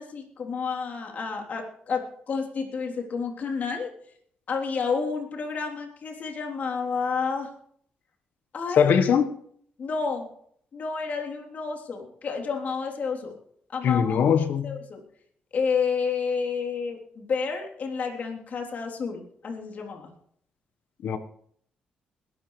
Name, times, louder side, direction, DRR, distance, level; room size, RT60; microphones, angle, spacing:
voice 1, 0.0-3.9 4.5-7.5 8.5-9.0 9.8-10.3 10.7-13.4 13.7-14.2 14.6-15.0 15.5-20.1, left 5 dB, 55° left, 3.5 m, -30 dB
voice 2, 8.8-9.3 13.8-14.7 21.0-21.2, left 7 dB, 75° left, 1.4 m, -21 dB
21.0 x 12.5 x 3.3 m
cardioid pair, 80°, 3 cm